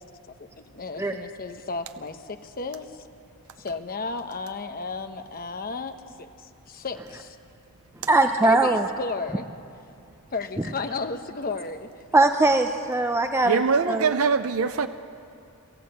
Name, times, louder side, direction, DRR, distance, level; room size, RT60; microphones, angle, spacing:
voice 1, 0.4-3.0 3.6-7.4 8.4-9.5 10.3-11.9, left 3 dB, 40° left, 7 dB, 1.0 m, -33 dB
voice 2, 8.1-8.8 12.1-14.1, right 2 dB, 10° right, 5 dB, 0.6 m, -21 dB
voice 3, 13.5-14.9, right 5 dB, 75° right, 9 dB, 0.6 m, -22 dB
26.5 x 13.5 x 7.9 m, 2.5 s
head